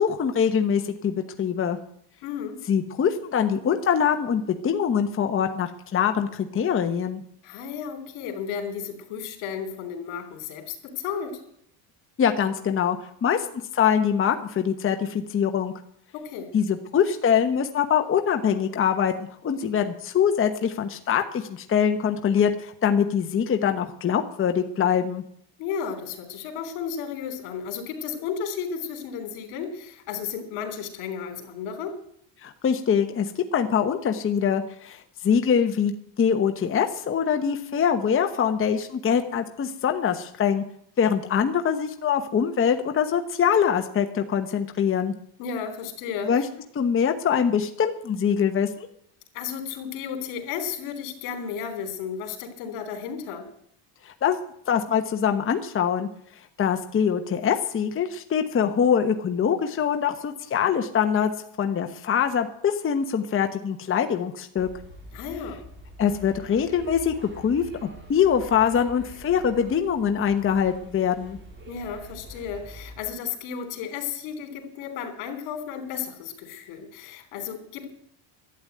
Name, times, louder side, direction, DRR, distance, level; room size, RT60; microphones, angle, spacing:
voice 1, 0.0-1.8 2.7-7.2 12.2-13.5 13.7-15.7 16.5-19.1 19.4-25.2 32.4-40.6 41.0-45.1 46.2-46.4 46.7-48.9 54.1-54.4 54.7-56.1 56.6-61.3 61.6-64.7 66.0-67.1 67.4-71.4, left 7 dB, 25° left, 6 dB, 1.0 m, -23 dB
voice 2, 2.2-2.6 7.4-11.4 16.1-16.5 25.6-31.9 45.4-46.5 49.3-53.5 65.1-65.6 71.7-77.9, left 7 dB, 80° left, 6 dB, 3.3 m, -33 dB
sound 1, 64.6-73.0, right 1 dB, 25° right, 2.9 m, -45 dB
12.0 x 8.9 x 9.0 m, 0.68 s
cardioid pair, 135°, 48 cm